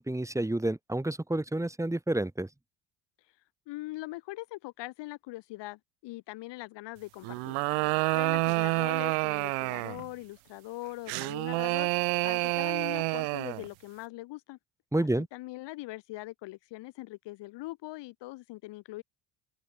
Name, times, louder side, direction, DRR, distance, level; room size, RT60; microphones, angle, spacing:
voice 1, 0.0-2.5 14.9-15.3, right 1 dB, 5° right, 2.0 m, -29 dB
voice 2, 3.7-7.6 8.1-11.9 12.2-14.6 15.0-19.0, left 19 dB, 65° left, 2.3 m, -42 dB
sound 1, 7.2-10.1 11.1-13.7, right 40 dB or more, 80° right, 0.9 m, -29 dB
open air
supercardioid pair, 75°, 45 cm